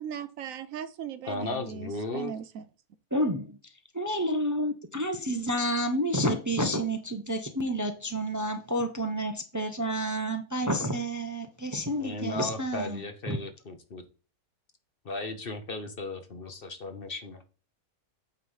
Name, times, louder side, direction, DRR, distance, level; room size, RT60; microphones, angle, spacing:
voice 1, 0.0-2.6, right 9 dB, 75° right, 1.0 m, -38 dB
voice 2, 1.2-2.3 11.9-14.0 15.0-17.4, left 2 dB, 45° left, 1.1 m, -36 dB
voice 3, 3.1-3.6 3.9-13.4, equal, 20° right, 0.6 m, -29 dB
8.9 x 3.2 x 5.5 m
omnidirectional pair, 1.5 m